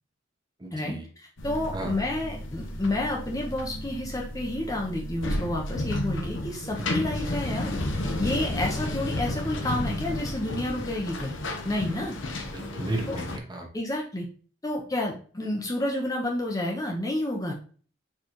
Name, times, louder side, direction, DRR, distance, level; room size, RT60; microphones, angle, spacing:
voice 1, 0.6-1.1 1.7-1.9 6.8-6.9 12.5-13.7, right 2 dB, 20° right, 2 dB, 0.9 m, -34 dB
sound 1, 1.4-13.4, left 1 dB, 70° left, 0.8 m, -32 dB
voice 2, 1.4-11.4 11.6-12.2 13.1-13.2 13.7-14.3 14.6-17.5, left 1 dB, 20° left, -1 dB, 0.6 m, -30 dB
4.4 x 3.8 x 3.0 m, 0.42 s
head